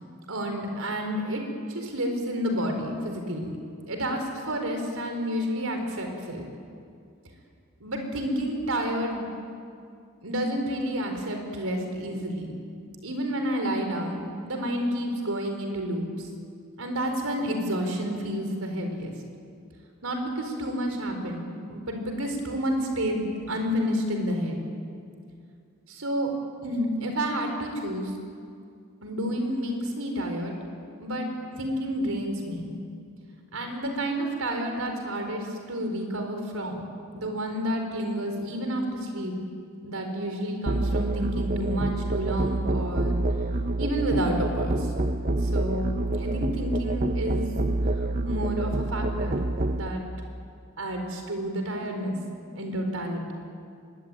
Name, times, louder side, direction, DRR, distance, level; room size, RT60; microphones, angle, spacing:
voice 1, 0.3-3.5 3.9-6.4 7.8-9.2 10.2-12.5 13.0-16.3 16.8-19.1 20.0-24.6 25.9-26.3 26.6-28.1 29.0-30.5 31.0-32.7 33.5-36.8 37.1-39.3 39.8-43.2 43.8-44.9 45.4-47.4 48.2-49.4 49.7-50.0 50.8-52.2 52.6-53.3, equal, 90° right, 4 dB, 4.6 m, -30 dB
Musical instrument, 40.7-49.9, right 2 dB, 40° right, 0.9 m, -27 dB
24.5 x 22.0 x 9.2 m, 2.4 s
head